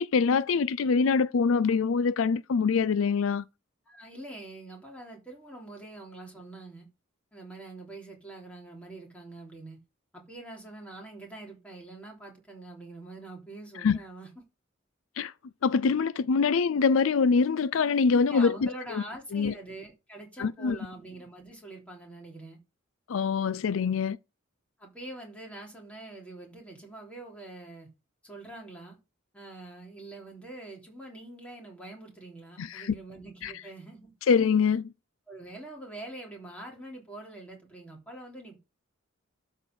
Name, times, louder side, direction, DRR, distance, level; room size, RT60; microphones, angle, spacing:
voice 1, 0.0-3.4 13.8-14.0 15.2-15.3 15.6-19.0 19.3-19.5 20.4-20.8 23.1-24.2 32.6-32.9 33.4-33.5 34.3-34.9, left 5 dB, 80° left, 0.4 m, -24 dB
voice 2, 3.9-6.9 7.3-9.8 10.1-14.3 18.2-22.6 24.8-27.9 28.2-29.0 29.3-34.1 35.3-38.6, right 2 dB, 5° left, 3.3 m, -44 dB
12.0 x 4.5 x 5.3 m
head